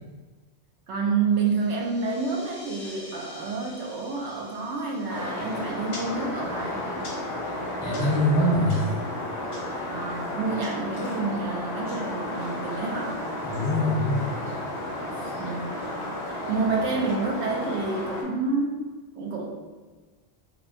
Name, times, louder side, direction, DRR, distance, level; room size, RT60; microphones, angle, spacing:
voice 1, 0.9-6.9 9.9-13.2 15.4-15.8 16.3-18.8 19.2-19.5, right 4 dB, 90° right, -1 dB, 0.9 m, -28 dB
sound 1, 1.3-7.5, left 1 dB, 25° left, 1.2 m, -49 dB
sound 2, 5.1-18.2, left 1 dB, 90° left, 1.1 m, -33 dB
voice 2, 7.8-8.9 13.4-14.4, left 1 dB, 45° left, -10 dB, 1.7 m, -23 dB
4.2 x 2.0 x 2.6 m, 1.3 s
omnidirectional pair, 1.1 m